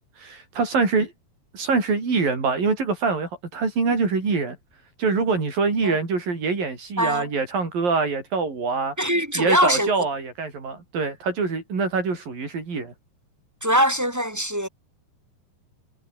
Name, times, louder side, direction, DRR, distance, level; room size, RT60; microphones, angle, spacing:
voice 1, 0.2-1.1 1.5-4.6 5.0-8.9 9.3-12.9, right 4 dB, 65° right, 8.4 m, -24 dB
voice 2, 7.0-7.3 9.0-9.9 13.6-14.7, equal, 5° right, 3.5 m, -22 dB
omnidirectional pair, 4.4 m